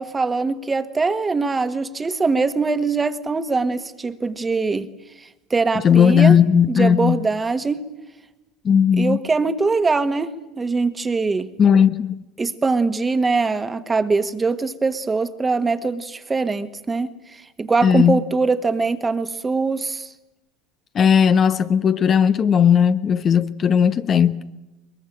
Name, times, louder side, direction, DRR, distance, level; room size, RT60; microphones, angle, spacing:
voice 1, 0.0-4.9 5.2-6.4 6.7-7.8 9.0-11.5 12.4-20.1, right 4 dB, 20° right, 1.6 m, -22 dB
voice 2, 5.8-7.2 8.6-9.2 11.6-12.2 17.8-18.2 20.9-24.4, left 7 dB, 35° left, 0.9 m, -16 dB
22.5 x 22.5 x 8.9 m
hypercardioid pair, 75°, 0 cm